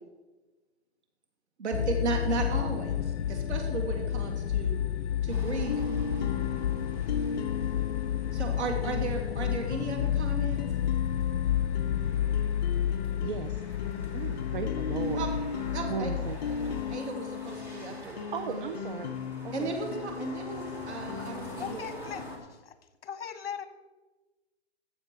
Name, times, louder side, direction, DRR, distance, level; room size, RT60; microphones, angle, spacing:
voice 1, 1.6-4.8 5.2-6.0 8.3-10.6 15.2-15.3 15.7-16.1 16.9-18.2 18.4-18.6 19.5-21.9, right 4 dB, 80° right, 3 dB, 2.9 m, -35 dB
sound 1, 1.7-17.0, left 10 dB, 85° left, 0.5 m, -31 dB
sound 2, 5.3-22.4, left 1 dB, 5° right, 1.4 m, -47 dB
sound 3, 5.7-21.8, left 6 dB, 40° left, 0.6 m, -37 dB
voice 2, 13.2-13.6 14.1-15.3 15.9-16.4 18.3-19.2 19.4-19.7, right 7 dB, 50° right, 7 dB, 0.7 m, -36 dB
voice 3, 21.6-22.2 22.5-22.7 23.0-23.7, left 8 dB, 60° left, 11 dB, 1.2 m, -38 dB
14.0 x 7.5 x 4.8 m, 1.2 s
hypercardioid pair, 155°, 34 cm